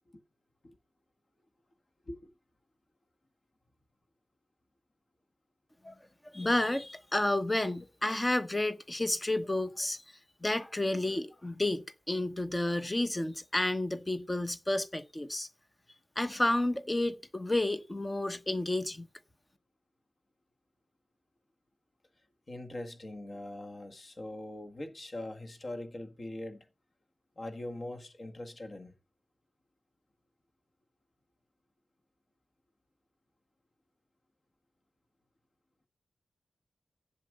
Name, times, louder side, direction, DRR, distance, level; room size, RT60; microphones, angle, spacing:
voice 1, 6.3-10.0 10.4-15.5 16.2-19.1, left 1 dB, 15° left, 0.9 m, -31 dB
voice 2, 22.5-26.7 27.4-28.9, left 1 dB, 40° left, 1.6 m, -42 dB
7.7 x 7.5 x 6.5 m
wide cardioid pair, 120°, 0 cm